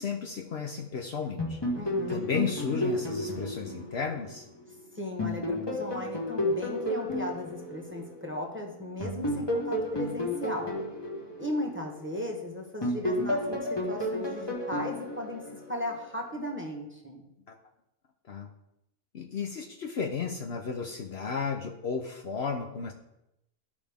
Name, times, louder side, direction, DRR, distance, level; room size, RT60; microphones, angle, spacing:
voice 1, 0.0-1.6 2.1-4.5 18.3-18.5 19.1-22.9, left 5 dB, 60° left, 3 dB, 0.9 m, -33 dB
sound 1, 1.4-4.7 5.2-8.4 9.0-12.3 12.8-16.1, left 1 dB, 20° left, 1.4 m, -32 dB
voice 2, 1.7-2.2 4.9-10.8 11.4-15.4 15.7-17.2, left 1 dB, 10° right, -1 dB, 1.1 m, -36 dB
13.0 x 5.1 x 3.5 m, 0.87 s
omnidirectional pair, 1.4 m